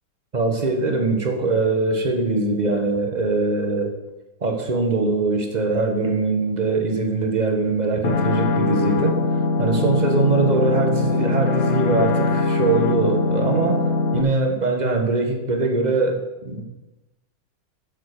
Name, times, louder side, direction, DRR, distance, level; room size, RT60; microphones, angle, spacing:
voice 1, 0.3-3.9 4.4-9.2 9.6-16.6, right 3 dB, 25° right, 3 dB, 1.3 m, -22 dB
sound 1, 8.0-14.2, left 3 dB, 55° left, 1.0 m, -21 dB
8.1 x 7.6 x 6.7 m, 1.1 s
omnidirectional pair, 2.2 m